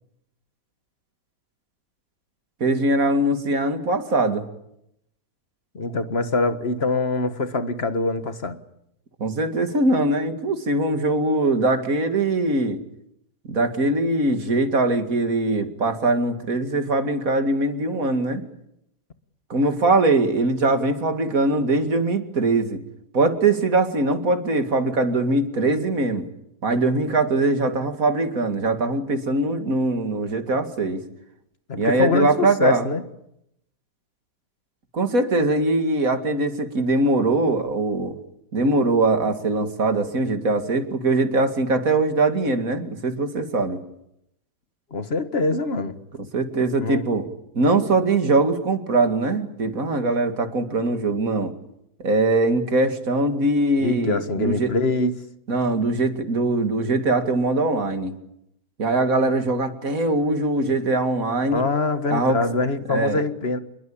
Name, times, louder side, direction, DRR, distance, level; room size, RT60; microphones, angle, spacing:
voice 1, 2.6-4.5 9.2-12.8 13.4-18.4 19.5-22.8 23.1-26.3 26.6-31.0 31.8-32.9 34.9-38.1 38.5-43.8 46.3-47.3 47.5-51.5 52.0-54.7 55.5-58.1 58.8-61.7 62.1-62.4 62.9-63.2, right 2 dB, 55° right, 2.7 m, -22 dB
voice 2, 5.8-8.6 31.7-33.0 44.9-46.0 46.8-47.0 53.8-55.2 61.5-63.6, left 3 dB, 40° left, 1.8 m, -24 dB
28.0 x 21.5 x 8.7 m
omnidirectional pair, 1.7 m